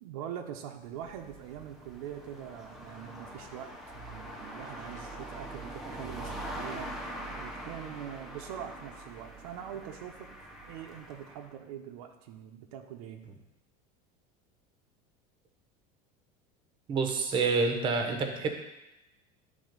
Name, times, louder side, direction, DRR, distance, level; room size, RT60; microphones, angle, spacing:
voice 1, 0.0-6.9 7.4-13.2, right 9 dB, 80° right, 4 dB, 0.8 m, -43 dB
sound 1, 0.8-11.5, right 1 dB, ahead, 0.7 m, -43 dB
voice 2, 16.9-18.5, right 4 dB, 25° right, 5 dB, 0.9 m, -28 dB
10.5 x 3.6 x 5.2 m, 0.95 s
cardioid pair, 175°, 19 cm